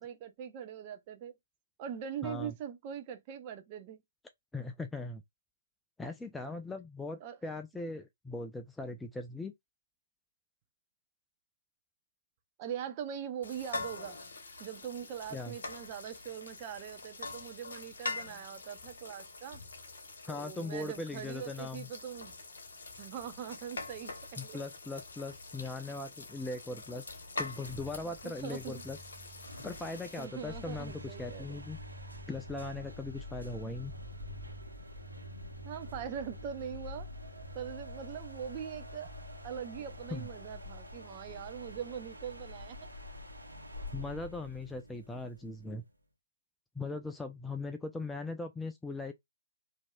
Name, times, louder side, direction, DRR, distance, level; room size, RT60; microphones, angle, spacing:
voice 1, 0.0-1.3 1.8-4.0 7.2-7.4 12.6-14.2 14.6-19.6 20.3-22.4 23.0-24.6 28.0-28.8 30.2-31.6 35.6-37.1 37.5-39.1 39.4-42.8, right 8 dB, 30° right, 0.6 m, -42 dB
voice 2, 2.2-2.5 4.5-5.2 6.0-9.5 15.3-15.6 20.3-21.9 24.4-27.1 27.4-29.0 29.6-31.8 32.3-33.9 40.1-40.3 43.9-45.8 46.8-49.1, left 3 dB, 5° left, 0.3 m, -39 dB
sound 1, 13.4-30.2, left 3 dB, 60° left, 1.1 m, -45 dB
sound 2, 27.3-45.8, left 1 dB, 85° right, 1.0 m, -46 dB
4.4 x 2.7 x 2.3 m
figure-of-eight pair, 130°, 0 cm